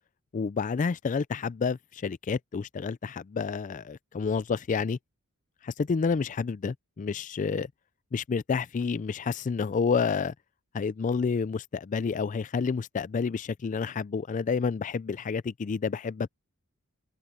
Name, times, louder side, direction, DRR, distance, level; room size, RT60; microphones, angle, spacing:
voice 1, 0.3-5.0 5.6-7.7 8.1-10.3 10.7-16.3, left 5 dB, 35° left, 0.4 m, -29 dB
head